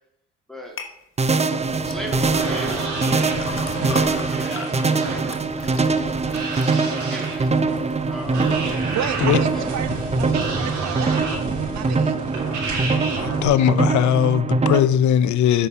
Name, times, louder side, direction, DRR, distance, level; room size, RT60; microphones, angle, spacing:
sound 1, 0.8-0.9 1.8-8.0 8.4-8.9 9.4-9.5, left 5 dB, 45° left, 1.3 m, -39 dB
sound 2, 1.2-14.8, right 4 dB, 20° right, 0.6 m, -23 dB
sound 3, 1.6-13.5, right 3 dB, 80° right, 3.2 m, -31 dB
voice 1, 1.8-5.2 5.6-5.7 7.1-7.8 8.1-8.6 9.5-9.7, equal, ahead, 2.1 m, -38 dB
voice 2, 8.9-11.4 11.7-12.2, right 10 dB, 65° right, 0.7 m, -31 dB
voice 3, 13.2-15.7, left 10 dB, 70° left, 0.6 m, -19 dB
8.3 x 5.7 x 5.5 m
cardioid pair, 90°, 30 cm